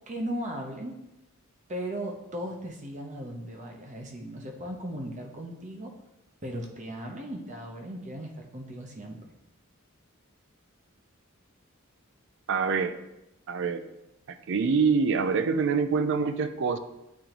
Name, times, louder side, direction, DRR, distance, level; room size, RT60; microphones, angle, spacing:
voice 1, 0.1-0.9 1.7-5.9 6.4-9.2, equal, 35° right, 2 dB, 0.8 m, -37 dB
voice 2, 12.5-13.0 13.5-13.8 14.3-16.8, right 5 dB, 60° right, 10 dB, 0.4 m, -25 dB
8.5 x 3.8 x 3.0 m, 0.91 s
head